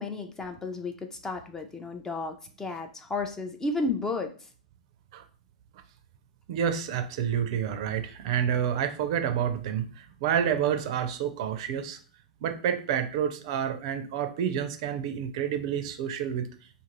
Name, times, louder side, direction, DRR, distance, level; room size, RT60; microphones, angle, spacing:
voice 1, 0.0-4.5, left 3 dB, 15° left, 5 dB, 0.5 m, -33 dB
voice 2, 6.5-12.0 12.4-16.5, right 8 dB, 55° right, 8 dB, 0.5 m, -29 dB
2.6 x 2.5 x 3.0 m, 0.39 s
hypercardioid pair, 105°, 4 cm